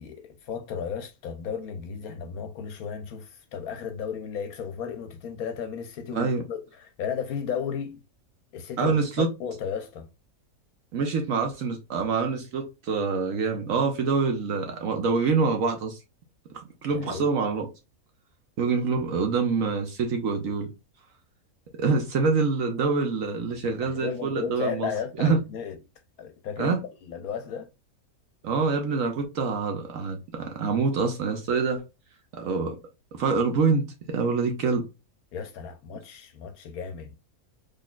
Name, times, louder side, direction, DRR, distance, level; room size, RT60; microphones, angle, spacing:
voice 1, 0.0-8.0 8.5-10.1 16.9-17.3 23.8-25.8 26.2-26.8 27.1-27.7 35.3-37.1, left 7 dB, 75° left, 1.0 m, -34 dB
voice 2, 8.8-9.3 10.9-16.0 16.5-17.7 18.6-20.7 21.8-24.9 25.2-25.4 26.6-26.8 28.4-31.8 32.3-32.8 33.1-34.8, right 4 dB, 65° right, 1.0 m, -26 dB
3.9 x 3.2 x 2.2 m
omnidirectional pair, 1.6 m